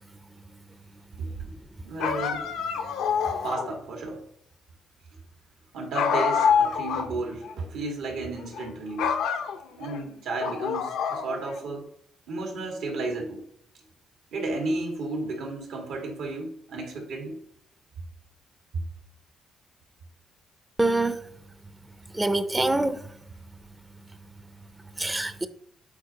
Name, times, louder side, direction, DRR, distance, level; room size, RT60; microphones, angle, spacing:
voice 1, 1.2-1.5 1.8-2.4 3.4-4.2 5.7-9.2 9.8-11.8 12.3-13.4 14.3-17.4, right 2 dB, 85° right, 1.8 m, -33 dB
sound 1, 2.0-3.8 6.0-7.1 7.4-7.5 8.4-8.7 9.0-10.0 10.4-11.6, left 7 dB, 85° left, 0.6 m, -26 dB
voice 2, 20.8-21.2 22.2-23.0 25.0-25.5, right 2 dB, 15° right, 0.5 m, -24 dB
8.2 x 4.6 x 2.9 m
cardioid pair, 90°, 0 cm